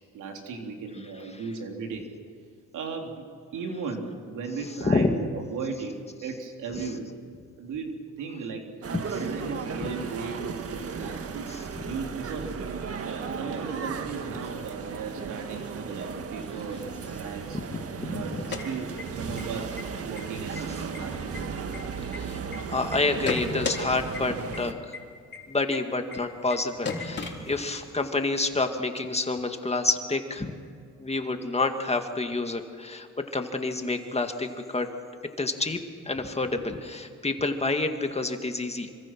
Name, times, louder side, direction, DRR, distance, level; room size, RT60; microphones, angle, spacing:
voice 1, 0.1-2.1 2.7-3.3 3.5-7.1 7.6-11.5 11.8-12.5 13.0-16.8 17.1-17.6 18.1-19.8 20.0-21.7, right 4 dB, 80° right, 2 dB, 3.6 m, -36 dB
sound 1, 8.8-24.7, right 5 dB, 50° right, 1.7 m, -35 dB
sound 2, 18.3-19.4 19.7-19.8 20.2-20.6 20.9-22.6 22.9-23.8 24.1-24.2 24.5-24.6 24.9-25.0 25.3-25.4 25.7-25.8 26.1-26.2 26.5-26.6 26.8-27.9, left 4 dB, 35° left, 4.0 m, -33 dB
voice 2, 22.1-24.8 25.5-30.5 31.0-34.9 35.4-35.8 36.1-38.9, left 3 dB, 20° left, 5 dB, 2.1 m, -28 dB
26.5 x 24.5 x 6.1 m, 2.3 s
cardioid pair, 90°, 30 cm